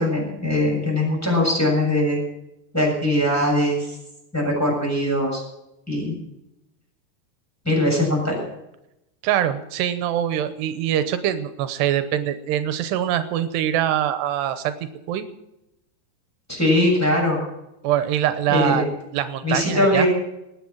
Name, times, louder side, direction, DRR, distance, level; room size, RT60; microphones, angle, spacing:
voice 1, 0.0-2.2 2.7-4.0 4.3-5.4 5.9-6.2 7.6-8.4 16.5-17.4 18.5-18.8 19.4-20.1, left 1 dB, 5° left, -3 dB, 6.8 m, -21 dB
voice 2, 9.2-15.3 17.8-18.8 19.1-20.0, right 11 dB, 85° right, 11 dB, 3.0 m, -23 dB
20.5 x 8.9 x 7.3 m, 0.89 s
omnidirectional pair, 4.8 m